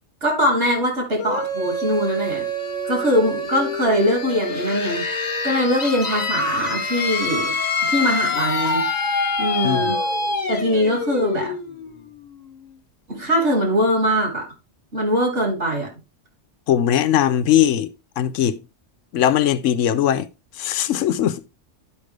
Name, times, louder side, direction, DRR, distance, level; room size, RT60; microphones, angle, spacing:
voice 1, 0.2-2.5 2.8-5.1 5.4-7.5 7.9-8.8 9.4-10.0 10.5-11.5 13.1-14.5 14.9-15.9, equal, 65° right, 3.0 m, -21 dB
sound 1, 1.2-12.7, left 2 dB, 35° left, 1.2 m, -26 dB
voice 2, 16.7-17.9 18.2-18.6 19.1-20.3 20.6-21.5, left 10 dB, 85° left, 1.0 m, -19 dB
11.5 x 5.2 x 3.3 m
omnidirectional pair, 1.3 m